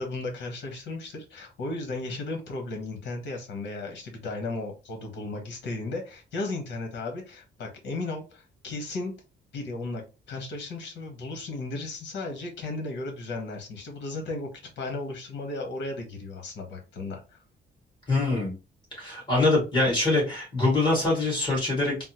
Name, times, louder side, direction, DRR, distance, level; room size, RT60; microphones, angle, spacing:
voice 1, 0.0-9.1 9.5-10.0 10.3-14.5 14.8-17.4, left 2 dB, 70° left, 3 dB, 1.1 m, -35 dB
voice 2, 18.1-18.5 18.9-22.0, left 2 dB, 25° left, -4 dB, 1.8 m, -24 dB
3.5 x 2.0 x 2.9 m, 0.31 s
cardioid pair, 155°, 19 cm